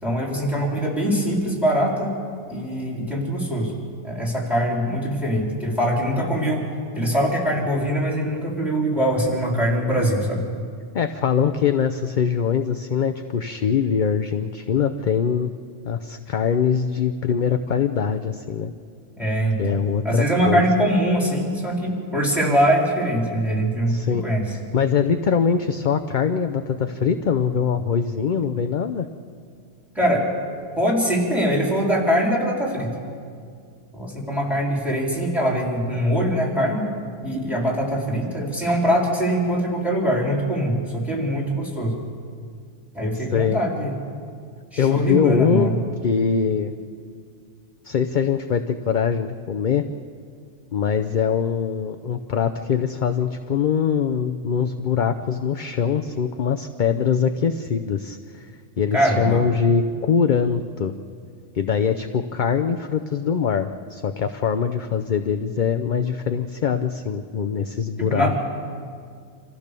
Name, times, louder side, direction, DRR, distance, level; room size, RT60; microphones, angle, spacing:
voice 1, 0.0-2.1 2.5-3.8 4.0-6.7 6.9-10.4 19.2-19.8 20.0-24.4 30.0-30.3 30.8-32.9 33.9-36.8 37.2-42.0 42.9-43.9 44.7-45.8 58.9-59.4 68.0-68.4, equal, ahead, -2 dB, 4.1 m, -22 dB
voice 2, 10.9-15.5 15.8-18.7 19.6-20.6 23.9-29.1 43.1-43.6 44.8-45.7 46.0-46.7 47.8-49.8 50.7-58.5 58.8-60.9 61.5-68.4, left 7 dB, 50° left, 8 dB, 0.7 m, -23 dB
27.0 x 15.0 x 6.8 m, 2.2 s
omnidirectional pair, 1.3 m